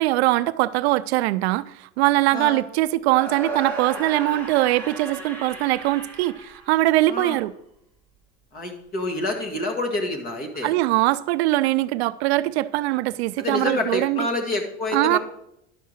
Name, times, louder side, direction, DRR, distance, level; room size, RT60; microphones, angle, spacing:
voice 1, 0.0-7.5 10.6-14.3 14.9-15.2, right 17 dB, 70° right, 0.4 m, -22 dB
sound 1, 3.1-7.2, right 2 dB, 5° left, 1.2 m, -35 dB
voice 2, 8.5-10.8 13.4-15.2, left 2 dB, 25° left, 1.5 m, -27 dB
11.0 x 4.7 x 6.4 m
supercardioid pair, 180°, 34 cm